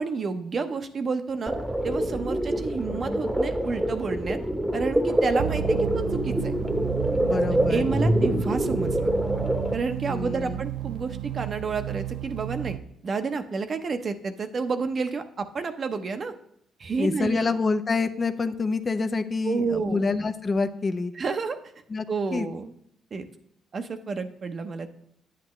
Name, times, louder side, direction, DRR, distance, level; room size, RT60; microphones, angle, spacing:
voice 1, 0.0-1.5 1.8-4.4 4.7-6.5 7.7-9.1 9.7-12.8 13.0-16.3 16.8-17.5 19.4-20.0 21.1-21.6 22.1-22.7 23.1-23.2 23.7-24.9, right 4 dB, 45° right, 8 dB, 0.8 m, -30 dB
sound 1, 1.5-9.8, right 1 dB, 5° right, 1.0 m, -26 dB
sound 2, 5.4-12.8, right 12 dB, 90° right, 0.4 m, -32 dB
voice 2, 7.2-7.9 10.0-10.6 17.0-21.1 21.9-22.0 22.3-22.5, left 4 dB, 40° left, 9 dB, 0.7 m, -27 dB
9.6 x 8.4 x 3.2 m, 0.70 s
supercardioid pair, 70°, 0 cm